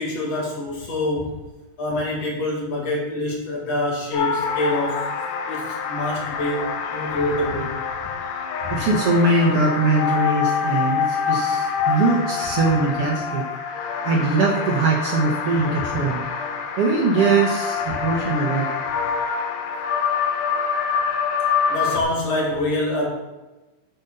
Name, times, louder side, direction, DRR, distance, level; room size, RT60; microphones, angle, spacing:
voice 1, 0.0-1.4 1.8-5.0 5.5-7.7 8.6-8.8 15.9-16.0 21.7-23.1, left 1 dB, 50° left, -2 dB, 3.0 m, -26 dB
sound 1, 4.1-22.0, left 6 dB, 80° left, 2.6 m, -26 dB
voice 2, 8.7-13.4 14.0-16.2 16.8-18.7, right 3 dB, 70° right, -2 dB, 1.4 m, -21 dB
7.7 x 7.2 x 5.5 m, 1.1 s
omnidirectional pair, 4.2 m